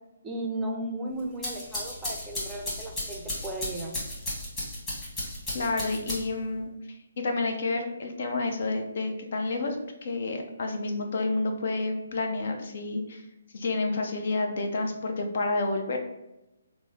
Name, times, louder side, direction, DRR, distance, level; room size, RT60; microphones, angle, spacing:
voice 1, 0.2-4.0, right 1 dB, 10° right, 0 dB, 0.5 m, -35 dB
sound 1, 1.2-6.5, left 1 dB, 15° left, 1.2 m, -35 dB
voice 2, 5.5-9.8 10.0-13.2 13.5-16.0, left 3 dB, 55° left, 4 dB, 0.5 m, -29 dB
3.0 x 2.0 x 3.5 m, 0.96 s
figure-of-eight pair, 140°, 0 cm